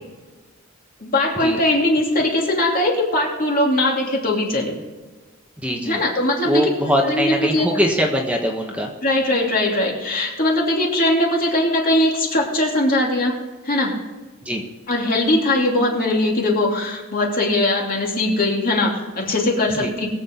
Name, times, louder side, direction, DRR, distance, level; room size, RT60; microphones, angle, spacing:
voice 1, 1.0-4.7 5.9-6.7 7.1-7.7 9.0-13.3 13.7-14.0 14.9-20.1, left 1 dB, 45° left, -1 dB, 2.9 m, -20 dB
voice 2, 5.6-6.0 6.4-8.9 14.4-14.6 19.7-19.9, equal, 5° right, 0 dB, 1.3 m, -22 dB
22.0 x 7.7 x 3.9 m, 1.3 s
head